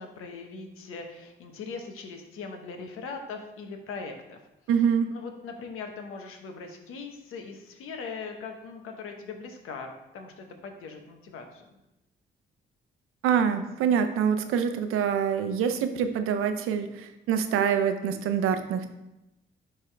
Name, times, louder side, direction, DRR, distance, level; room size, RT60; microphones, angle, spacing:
voice 1, 0.0-4.4 5.1-11.7, left 4 dB, 85° left, 4 dB, 1.0 m, -40 dB
voice 2, 4.7-5.1 13.2-18.9, right 7 dB, 90° right, 8 dB, 0.6 m, -25 dB
10.5 x 3.6 x 3.3 m, 0.94 s
supercardioid pair, 55°, 21 cm